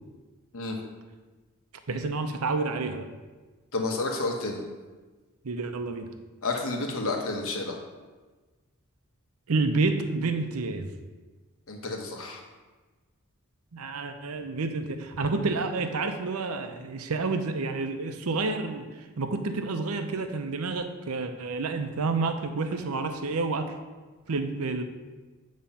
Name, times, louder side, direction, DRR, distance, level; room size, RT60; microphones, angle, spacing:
voice 1, 1.9-3.1 5.4-6.1 9.5-10.9 13.7-18.9 19.2-23.7 24.3-24.8, right 3 dB, 75° right, 7 dB, 0.7 m, -29 dB
voice 2, 3.7-4.6 6.4-7.8 11.7-12.4, left 2 dB, 65° left, 2 dB, 1.1 m, -30 dB
8.7 x 3.1 x 5.5 m, 1.3 s
head